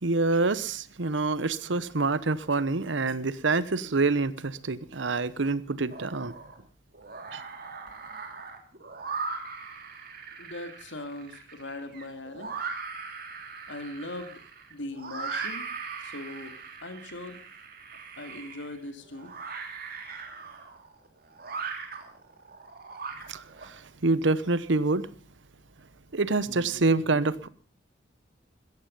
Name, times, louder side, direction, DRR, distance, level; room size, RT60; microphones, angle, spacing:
voice 1, 0.0-6.3 7.3-7.4 23.3-23.7 24.0-25.1 26.1-27.5, right 3 dB, 75° right, 1.0 m, -26 dB
sound 1, 5.9-6.6 6.9-23.7, right 5 dB, 55° right, 3.2 m, -39 dB
voice 2, 10.4-12.5 13.7-14.4 14.7-15.7 16.0-17.4 18.2-19.3, left 1 dB, 75° left, 2.5 m, -40 dB
16.5 x 14.0 x 5.4 m
head